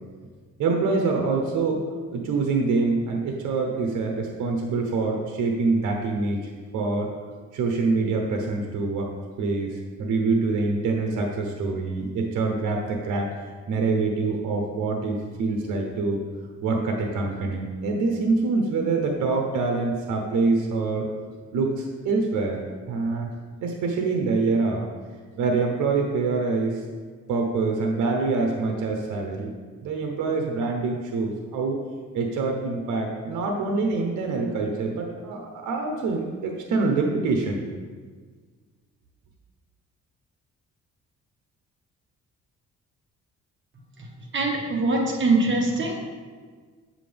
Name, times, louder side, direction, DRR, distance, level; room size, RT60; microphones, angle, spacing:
voice 1, 0.6-1.8 2.1-7.1 7.5-9.1 9.4-16.2 16.6-21.1 21.5-22.6 22.9-23.3 23.6-24.9 25.4-26.8 27.3-29.5 29.8-31.8 32.1-37.6, right 3 dB, 80° right, 2 dB, 1.0 m, -25 dB
voice 2, 44.3-46.0, right 2 dB, 40° right, 0 dB, 1.7 m, -23 dB
7.7 x 7.4 x 3.4 m, 1.5 s
cardioid pair, 90°, 30 cm